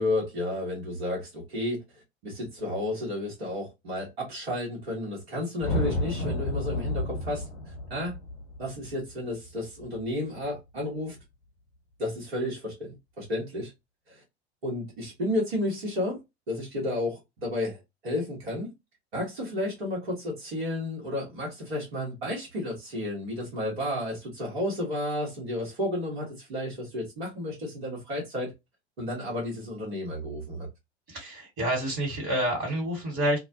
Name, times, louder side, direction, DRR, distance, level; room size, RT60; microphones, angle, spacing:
voice 1, 0.0-1.8 2.2-8.2 8.6-11.2 12.0-13.7 14.1-14.2 14.6-16.2 16.5-18.7 19.1-28.5 29.0-30.7, left 1 dB, 65° right, 1.2 m, -32 dB
sound 1, 5.6-10.0, left 1 dB, 45° left, 0.7 m, -31 dB
voice 2, 31.1-33.4, right 1 dB, 40° right, 1.5 m, -28 dB
2.4 x 2.0 x 2.7 m
figure-of-eight pair, 85°, 33 cm